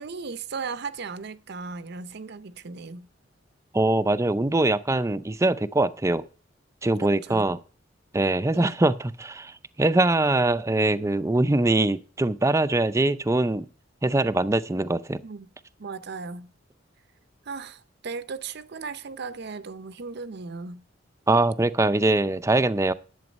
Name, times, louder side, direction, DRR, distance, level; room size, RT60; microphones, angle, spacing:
voice 1, 0.0-3.1 7.0-7.5 8.5-8.8 15.2-15.5 15.8-16.5 17.5-20.8, right 4 dB, 60° right, 0.6 m, -36 dB
voice 2, 3.7-6.2 6.8-7.6 8.1-13.7 14.0-15.2 21.3-22.9, right 2 dB, 15° right, 0.5 m, -23 dB
11.0 x 8.0 x 5.2 m
head